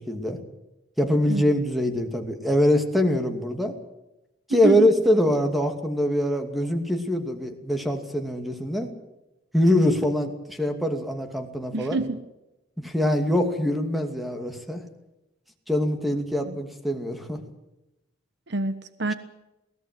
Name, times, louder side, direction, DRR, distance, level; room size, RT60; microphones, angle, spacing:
voice 1, 0.1-0.4 1.0-3.7 4.5-8.9 9.5-12.0 12.8-14.8 15.7-17.4, left 1 dB, ahead, 6 dB, 2.6 m, -23 dB
voice 2, 4.5-4.9 11.7-12.2 16.5-16.6 18.5-19.1, right 3 dB, 65° right, 12 dB, 1.2 m, -27 dB
22.5 x 17.5 x 7.8 m, 0.95 s
head